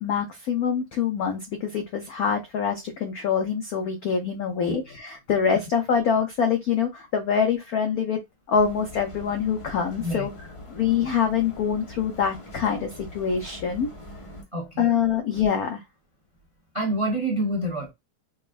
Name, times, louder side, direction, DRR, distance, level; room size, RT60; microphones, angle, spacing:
voice 1, 0.0-8.2 8.5-10.3 10.7-13.9 14.8-15.8, left 7 dB, 85° left, 0.8 m, -25 dB
sound 1, 8.5-14.4, left 1 dB, 50° left, 0.3 m, -42 dB
voice 2, 14.5-14.9 16.7-17.9, right 1 dB, 40° right, 0.4 m, -27 dB
5.2 x 2.4 x 2.5 m
omnidirectional pair, 2.4 m